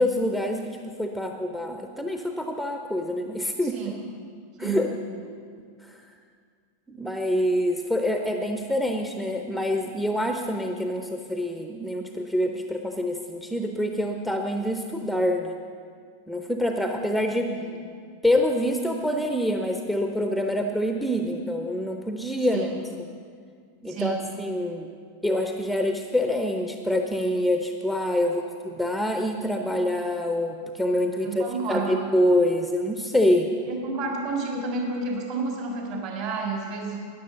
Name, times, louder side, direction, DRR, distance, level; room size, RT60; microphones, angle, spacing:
voice 1, 0.0-3.8 4.6-4.9 5.8-6.0 6.9-15.6 16.3-17.5 18.2-22.7 23.0-23.1 23.8-24.9 25.2-33.5, left 1 dB, ahead, 4 dB, 0.7 m, -26 dB
voice 2, 3.6-4.0 4.6-4.9 17.6-17.7 22.5-22.7 23.9-24.3 28.2-28.5 31.2-32.1 33.7-37.0, right 3 dB, 45° right, 0 dB, 3.5 m, -30 dB
13.0 x 10.0 x 6.8 m, 2.1 s
figure-of-eight pair, 90°, 0 cm